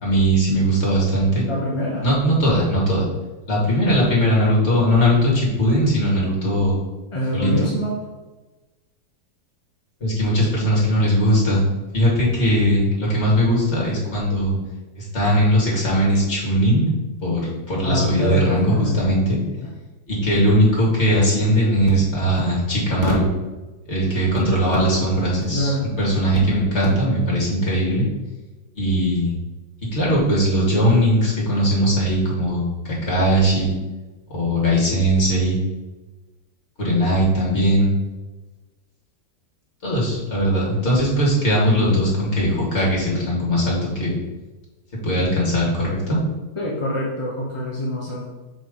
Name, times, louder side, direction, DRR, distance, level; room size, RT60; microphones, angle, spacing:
voice 1, 0.0-1.5 2.0-3.1 3.5-6.8 7.3-7.7 10.0-11.6 11.9-14.6 14.9-16.9 17.2-19.4 20.1-23.3 23.9-28.0 28.7-29.3 29.9-33.7 34.3-35.6 36.8-37.9 39.8-44.1 45.0-46.2, equal, 35° left, -5 dB, 2.7 m, -19 dB
voice 2, 1.5-2.1 7.1-8.0 17.8-19.0 19.6-19.7 25.5-25.9 46.6-48.3, left 1 dB, 20° left, -4 dB, 0.9 m, -25 dB
6.1 x 5.3 x 5.3 m, 1.2 s
omnidirectional pair, 2.0 m